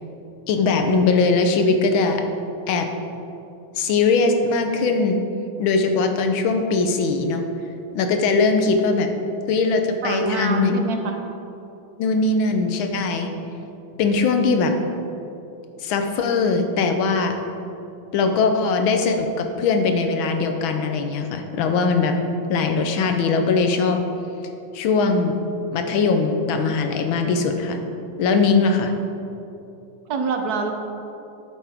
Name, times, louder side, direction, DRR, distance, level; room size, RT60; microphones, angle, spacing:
voice 1, 0.5-2.2 2.7-2.9 3.7-5.2 5.6-7.4 7.9-9.1 9.5-10.7 12.0-13.3 14.0-14.7 15.8-17.4 18.1-22.1 22.5-24.0 24.7-25.3 25.7-27.8 28.2-28.9, left 4 dB, 85° left, 5 dB, 1.6 m, -20 dB
voice 2, 10.0-11.2 30.1-30.7, right 3 dB, 60° right, 4 dB, 1.2 m, -25 dB
10.5 x 8.4 x 3.5 m, 2.8 s
omnidirectional pair, 2.1 m